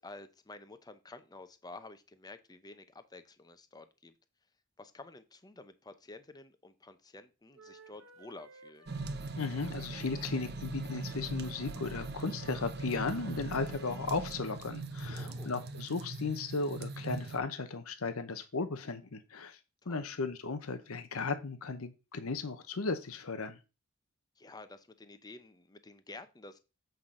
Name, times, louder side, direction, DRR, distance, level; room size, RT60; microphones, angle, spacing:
voice 1, 0.0-4.1 4.8-8.9 15.2-15.5 19.8-20.1 24.4-26.6, left 2 dB, 20° left, 10 dB, 0.7 m, -51 dB
Wind instrument woodwind instrument, 7.5-10.5 10.8-14.0, right 3 dB, 70° right, 1.3 m, -57 dB
sound 1, 8.9-17.4, right 3 dB, 50° right, 0.8 m, -41 dB
voice 2, 9.4-19.6 19.9-23.6, left 4 dB, 85° left, 10 dB, 0.9 m, -36 dB
7.9 x 5.7 x 3.7 m, 0.29 s
head